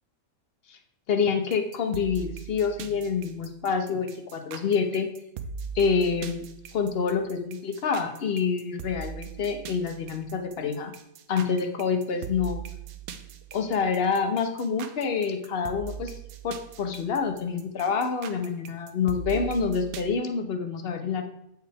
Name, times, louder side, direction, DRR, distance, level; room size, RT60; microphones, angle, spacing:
voice 1, 1.1-5.1 5.7-6.4 6.7-10.9 11.3-12.6 13.5-16.1 16.4-21.2, left 5 dB, 50° left, 6 dB, 0.8 m, -27 dB
sound 1, 1.5-20.0, right 6 dB, 85° right, 1.1 m, -40 dB
8.0 x 4.7 x 3.4 m, 0.81 s
omnidirectional pair, 1.5 m